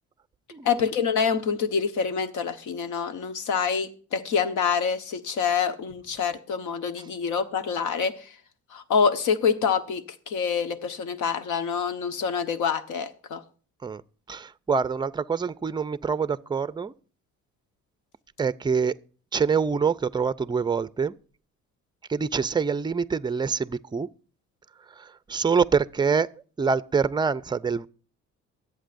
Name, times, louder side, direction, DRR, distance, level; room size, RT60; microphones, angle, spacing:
voice 1, 0.6-8.3 8.7-13.4, left 6 dB, 80° left, 1.2 m, -26 dB
voice 2, 14.3-16.9 18.4-19.0 19.3-21.1 22.1-24.1 25.0-26.3 26.6-27.9, right 5 dB, 15° right, 0.4 m, -25 dB
23.5 x 8.3 x 2.6 m
cardioid pair, 90°, 30 cm